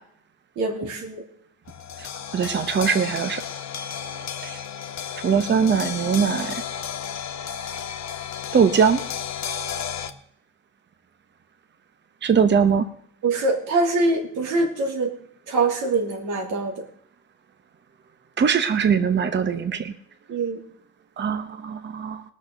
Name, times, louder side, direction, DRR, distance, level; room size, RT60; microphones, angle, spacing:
voice 1, 0.6-1.2 13.2-15.1 15.5-16.8 20.3-20.6, right 3 dB, 85° right, 2 dB, 3.1 m, -24 dB
sound 1, 1.7-10.1, left 8 dB, 60° left, 1.1 m, -33 dB
voice 2, 2.3-3.4 4.4-4.6 5.2-6.6 8.5-9.0 12.2-12.9 18.4-19.9 21.2-22.2, right 6 dB, 35° right, 10 dB, 0.9 m, -21 dB
18.5 x 6.4 x 6.6 m, 0.68 s
cardioid pair, 90°, 30 cm